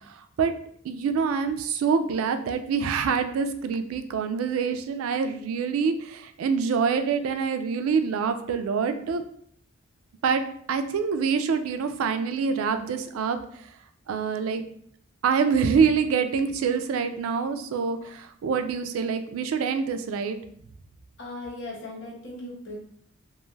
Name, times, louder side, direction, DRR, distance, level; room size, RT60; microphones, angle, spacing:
voice 1, 0.8-9.2 10.2-10.4 10.7-13.4 14.1-14.6 15.2-20.4, right 6 dB, 85° right, 8 dB, 0.3 m, -25 dB
voice 2, 21.2-22.8, left 2 dB, 60° left, -4 dB, 0.9 m, -38 dB
2.5 x 2.3 x 3.1 m, 0.64 s
head